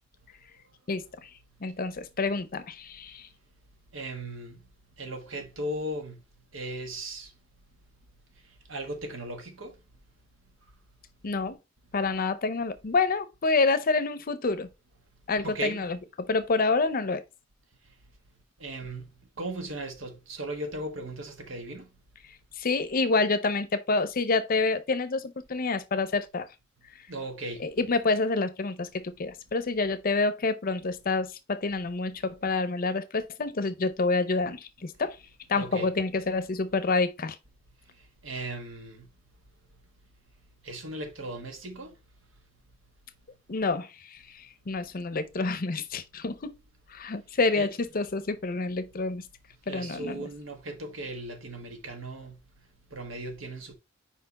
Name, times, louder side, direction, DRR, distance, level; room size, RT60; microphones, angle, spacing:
voice 1, 1.6-3.3 11.2-11.6 11.9-14.7 15.3-17.2 22.6-26.5 27.6-35.2 35.5-37.4 43.5-44.2 44.7-46.5 46.9-49.2 49.7-50.2, left 3 dB, 45° left, 0.6 m, -28 dB
voice 2, 3.9-4.6 5.0-6.2 6.5-7.3 8.7-9.8 15.4-15.9 18.6-19.1 19.4-21.9 27.1-27.7 35.5-35.9 38.2-39.1 40.6-41.9 47.5-47.7 49.7-52.4 52.9-53.7, right 1 dB, 80° right, 1.4 m, -37 dB
5.0 x 4.5 x 4.1 m
head